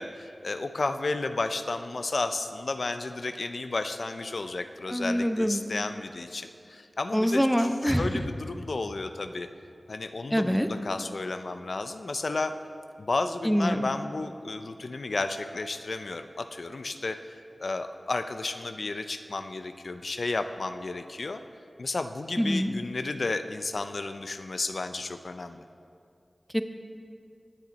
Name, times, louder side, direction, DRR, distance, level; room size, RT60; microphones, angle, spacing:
voice 1, 0.0-9.5 9.9-12.5 13.0-21.4 21.8-25.6, left 3 dB, 70° left, 8 dB, 0.4 m, -32 dB
voice 2, 4.9-5.6 7.1-8.2 10.3-10.7 13.4-13.8 22.4-22.7 26.5-26.6, equal, 5° left, 8 dB, 0.8 m, -25 dB
19.0 x 7.3 x 4.0 m, 2.4 s
cardioid pair, 45°, 0 cm